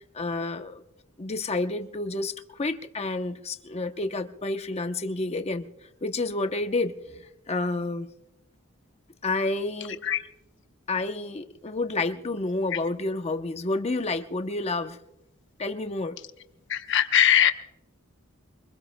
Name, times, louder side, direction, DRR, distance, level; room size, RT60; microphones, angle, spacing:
voice 1, 0.1-0.8 1.2-5.7 6.0-8.1 9.2-10.0 10.9-15.0 15.6-16.2, left 2 dB, 30° left, 0.8 m, -29 dB
voice 2, 16.7-17.5, left 9 dB, 60° left, 0.9 m, -20 dB
24.5 x 21.5 x 2.2 m
head